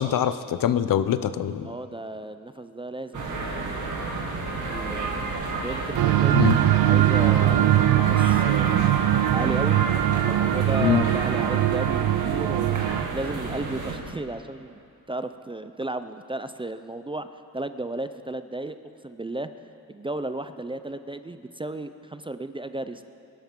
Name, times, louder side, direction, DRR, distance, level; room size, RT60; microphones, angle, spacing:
voice 1, 0.0-1.7 6.3-6.6 10.8-11.0, left 10 dB, 60° left, 13 dB, 0.6 m, -23 dB
voice 2, 1.6-4.1 4.6-6.5 6.9-8.9 9.3-9.8 10.2-14.8 15.1-17.3 17.5-18.8 19.0-19.5 19.9-23.1, right 2 dB, 15° right, 10 dB, 0.4 m, -34 dB
sound 1, 3.1-14.0, right 3 dB, 55° right, 2.3 m, -30 dB
sound 2, 5.9-13.0, right 14 dB, 75° right, 0.5 m, -21 dB
21.5 x 11.5 x 3.8 m, 2.6 s
cardioid pair, 90°, 37 cm